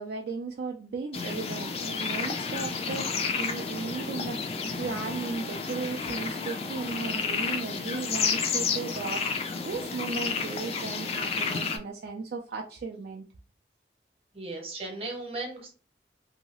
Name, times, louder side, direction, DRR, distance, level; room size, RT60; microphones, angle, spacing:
voice 1, 0.0-13.2, right 4 dB, 60° right, 1 dB, 0.3 m, -36 dB
sound 1, 1.1-11.8, left 5 dB, 35° left, 0.3 m, -31 dB
voice 2, 14.3-15.7, right 2 dB, 30° right, 0 dB, 0.9 m, -36 dB
2.7 x 2.3 x 3.0 m, 0.36 s
head